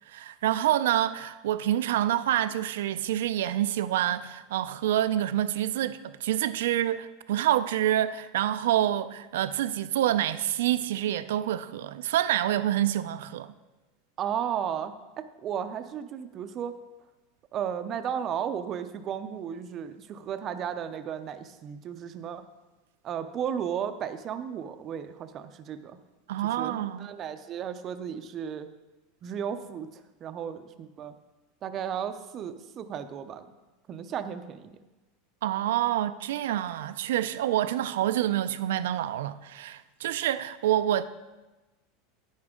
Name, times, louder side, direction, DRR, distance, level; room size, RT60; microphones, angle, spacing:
voice 1, 0.1-13.5 26.3-27.1 35.4-41.0, right 12 dB, 85° right, 0.4 m, -27 dB
voice 2, 14.2-16.8 17.5-22.4 23.0-26.0 26.6-28.7 29.2-29.9 30.2-31.1 31.6-33.5 33.9-34.8, right 8 dB, 25° right, 0.4 m, -34 dB
10.5 x 9.5 x 3.7 m
supercardioid pair, 175°, 0 cm